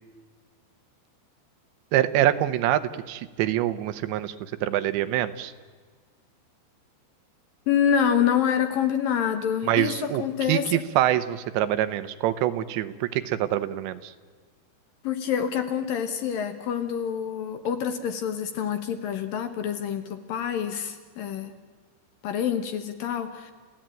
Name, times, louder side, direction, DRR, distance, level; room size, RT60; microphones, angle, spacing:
voice 1, 1.9-5.5 9.7-14.1, right 13 dB, 85° right, 12 dB, 3.3 m, -25 dB
voice 2, 7.7-10.8 15.0-21.5 22.2-23.5, left 8 dB, 65° left, 8 dB, 2.5 m, -27 dB
30.0 x 16.0 x 9.0 m, 1.5 s
omnidirectional pair, 5.1 m